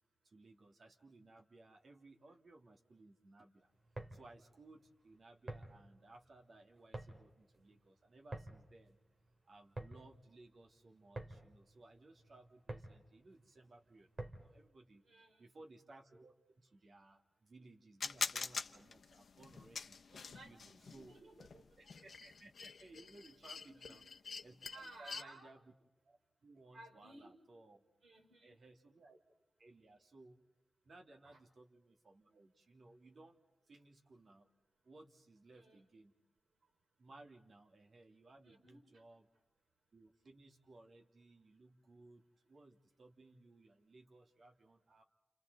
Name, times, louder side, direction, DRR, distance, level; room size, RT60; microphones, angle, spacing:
voice 1, 0.2-3.7 4.1-9.0 9.4-15.0 15.4-20.0 20.4-21.1 21.8-24.0 24.4-25.6 26.0-27.8 28.4-29.2 29.6-30.4 30.8-33.4 33.6-34.5 34.8-36.1 37.0-39.3 39.9-45.0, right 2 dB, 50° right, 2 dB, 2.2 m, -61 dB
sound 1, 3.7-14.6, right 2 dB, 35° right, 2.6 m, -51 dB
voice 2, 15.0-15.5 20.1-22.0 23.7-24.0 24.7-25.5 26.7-27.4 28.0-28.6 31.2-31.4 35.5-35.8 38.4-38.8, right 2 dB, 85° right, 3 dB, 5.0 m, -58 dB
sound 2, 18.0-25.2, left 5 dB, 65° left, 0.8 m, -45 dB
29.0 x 29.0 x 4.0 m, 1.0 s
wide cardioid pair, 160°, 0 cm